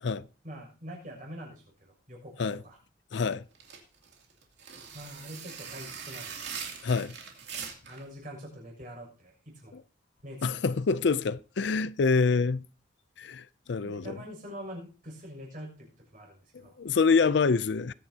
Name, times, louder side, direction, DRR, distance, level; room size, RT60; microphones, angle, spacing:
voice 1, 0.4-2.3 2.6-2.8 4.9-6.5 7.9-9.8 10.2-10.8 13.8-16.7, equal, 45° right, 6.7 m, -44 dB
voice 2, 3.1-3.4 6.8-7.2 9.7-9.8 10.4-12.6 13.2-14.2 16.5-17.9, left 4 dB, 65° left, 0.5 m, -26 dB
sound 1, 3.5-8.0, right 6 dB, 60° right, 2.8 m, -41 dB
21.0 x 9.4 x 2.8 m
head